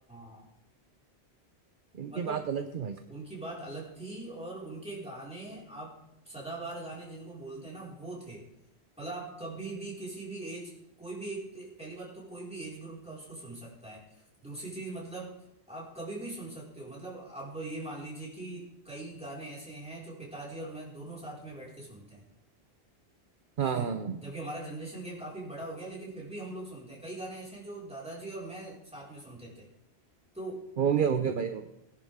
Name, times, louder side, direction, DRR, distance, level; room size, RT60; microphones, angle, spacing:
voice 1, 0.1-0.5 2.1-2.5 3.1-5.9 6.2-8.4 9.0-10.7 11.0-15.4 15.7-22.2 23.6-23.9 24.2-29.7 30.3-30.6 31.1-31.3, right 2 dB, 5° right, -6 dB, 4.8 m, -41 dB
voice 2, 2.0-2.9 23.6-24.2 30.8-31.6, right 7 dB, 55° right, 8 dB, 0.8 m, -29 dB
19.0 x 10.5 x 3.6 m, 0.87 s
omnidirectional pair, 1.1 m